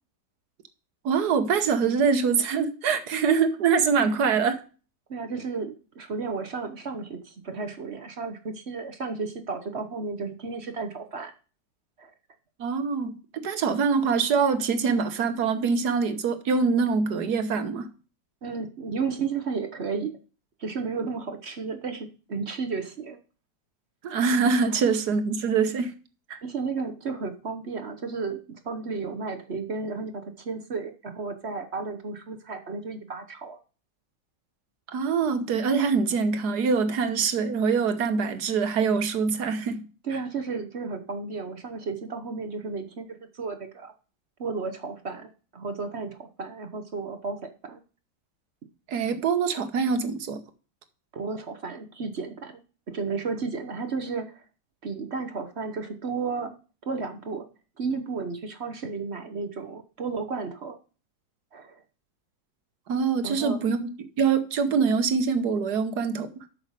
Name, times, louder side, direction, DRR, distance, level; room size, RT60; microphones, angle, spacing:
voice 1, 1.0-4.5 12.6-17.9 24.0-25.9 26.3-26.4 34.9-39.8 40.1-40.2 48.9-50.4 62.9-63.9 64.2-66.3, right 5 dB, 65° right, 1.5 m, -24 dB
voice 2, 5.1-11.3 12.0-12.1 18.4-20.1 20.6-23.2 26.4-33.6 40.0-43.9 44.4-47.8 51.1-52.6 52.9-54.4 54.8-56.5 56.9-57.5 57.8-60.8 61.5-61.8 63.2-63.6, right 4 dB, 45° right, 1.0 m, -33 dB
8.3 x 6.4 x 4.8 m
omnidirectional pair, 1.9 m